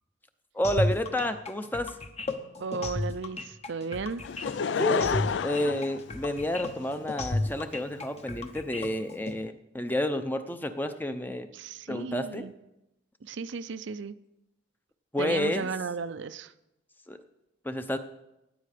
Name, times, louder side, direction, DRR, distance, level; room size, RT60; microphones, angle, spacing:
voice 1, 0.5-1.9 4.8-11.5 11.9-12.5 15.1-15.7 17.1-17.2 17.6-18.0, left 1 dB, 10° left, 9 dB, 0.6 m, -30 dB
sound 1, 0.6-9.3, left 2 dB, 35° left, 0.9 m, -33 dB
voice 2, 2.6-4.2 11.5-12.5 13.2-14.1 15.2-16.5, right 5 dB, 70° right, 12 dB, 0.5 m, -35 dB
Laughter / Crowd, 4.2-6.9 7.6-7.7, left 6 dB, 65° left, 0.4 m, -30 dB
17.0 x 9.4 x 5.0 m, 0.91 s
head